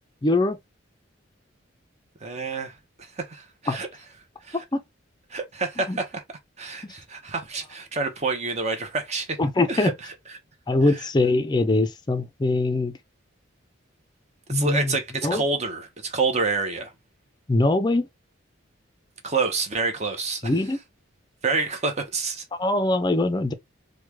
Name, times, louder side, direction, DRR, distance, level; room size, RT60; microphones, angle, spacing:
voice 1, 0.2-0.6 3.7-3.8 4.5-4.8 5.9-6.0 6.8-6.9 9.4-9.9 10.7-12.9 14.5-14.9 15.2-15.4 17.5-18.1 20.4-20.8 22.6-23.5, left 2 dB, 20° left, 0.4 m, -22 dB
voice 2, 2.2-2.7 3.2-3.9 4.4-4.6 5.3-6.2 6.6-9.4 9.7-10.4 10.8-11.1 14.5-16.9 19.2-20.5 21.4-22.4, right 4 dB, 35° right, 0.7 m, -28 dB
3.1 x 2.2 x 3.3 m
head